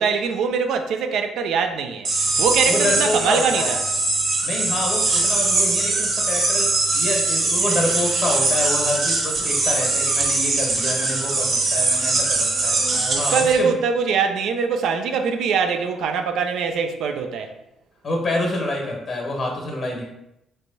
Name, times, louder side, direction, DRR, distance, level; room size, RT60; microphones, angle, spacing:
voice 1, 0.0-2.1 2.4-3.8 12.9-17.5, right 6 dB, 80° right, 0.5 m, -22 dB
sound 1, 2.0-13.6, right 3 dB, 60° right, 1.2 m, -21 dB
voice 2, 2.6-3.8 4.4-13.7 18.0-20.0, left 2 dB, 50° left, 1.5 m, -27 dB
3.3 x 3.3 x 3.9 m
cardioid pair, 90°, 0 cm